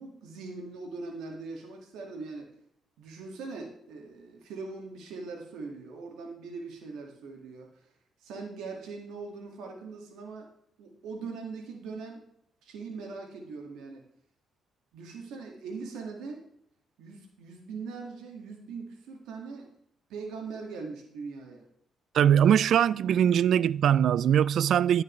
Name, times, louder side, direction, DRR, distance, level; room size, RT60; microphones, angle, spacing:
voice 1, 0.0-2.5 3.0-7.7 8.2-10.5 10.8-12.3 12.6-14.0 14.9-16.4 17.0-19.7 20.1-21.6, right 4 dB, 85° right, 1.9 m, -41 dB
voice 2, 22.1-25.0, right 9 dB, 70° right, 0.3 m, -22 dB
10.5 x 10.5 x 3.1 m
cardioid pair, 90°, 0 cm